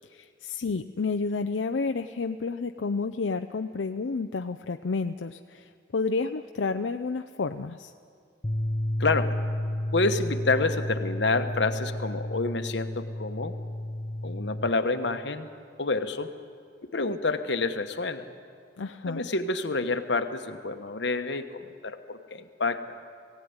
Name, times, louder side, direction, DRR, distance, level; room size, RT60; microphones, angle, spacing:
voice 1, 0.1-7.9 18.8-19.2, left 4 dB, 90° left, 7 dB, 0.5 m, -30 dB
sound 1, 8.4-14.7, left 1 dB, 25° left, 0.9 m, -31 dB
voice 2, 9.0-9.3 9.9-13.5 14.2-15.5 15.8-16.3 16.8-18.3 19.1-23.0, left 3 dB, 70° left, 8 dB, 1.2 m, -28 dB
19.0 x 16.5 x 9.6 m, 2.3 s
head